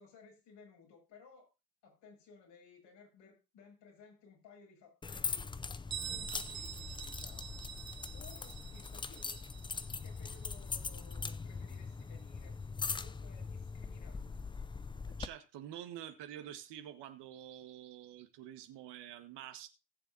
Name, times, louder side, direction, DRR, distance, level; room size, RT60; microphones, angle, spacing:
voice 1, 0.0-1.5 1.8-5.5 6.1-7.6 8.1-9.4 9.9-14.4, left 5 dB, 65° left, 6.8 m, -59 dB
sound 1, 5.0-15.3, left 4 dB, 10° left, 0.5 m, -41 dB
Bell, 5.9-11.4, right 9 dB, 35° right, 1.6 m, -47 dB
voice 2, 15.2-19.7, right 11 dB, 60° right, 1.7 m, -48 dB
19.5 x 7.0 x 2.8 m
hypercardioid pair, 70°, 47 cm